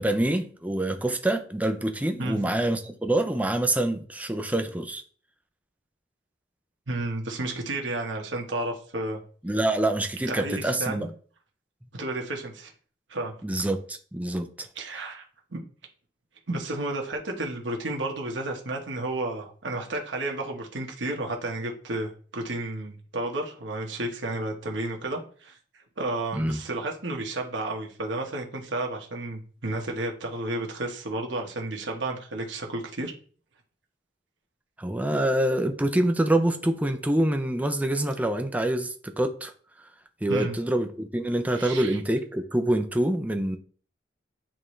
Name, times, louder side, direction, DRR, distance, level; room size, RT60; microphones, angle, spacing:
voice 1, 0.0-5.0 9.4-11.1 13.4-14.7 14.9-15.0 26.3-26.6 34.8-39.5 40.2-43.6, right 1 dB, 10° right, 0.6 m, -26 dB
voice 2, 6.9-9.2 10.3-11.1 11.9-12.7 13.1-13.3 14.8-15.2 15.5-15.6 16.5-33.1 40.3-40.6 41.5-42.0, right 2 dB, 75° right, 1.2 m, -32 dB
8.9 x 3.7 x 3.2 m
head